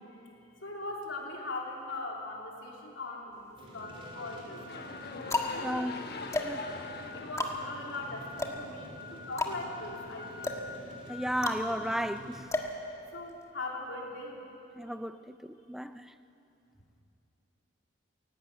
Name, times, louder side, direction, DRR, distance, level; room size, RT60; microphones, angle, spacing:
voice 1, 0.2-5.0 5.4-6.0 7.1-10.5 13.1-14.4, left 2 dB, 80° left, -1 dB, 3.5 m, -41 dB
sound 1, 3.4-4.1 4.7-13.5, left 2 dB, 15° left, 1.5 m, -36 dB
sound 2, 3.6-12.4, left 1 dB, 30° right, 3.2 m, -46 dB
sound 3, 4.5-8.7, left 4 dB, 60° left, 1.1 m, -43 dB
voice 2, 5.6-6.0 6.4-6.6 11.1-12.4 14.8-16.1, equal, ahead, 11 dB, 0.5 m, -34 dB
17.0 x 17.0 x 9.0 m, 2.7 s
head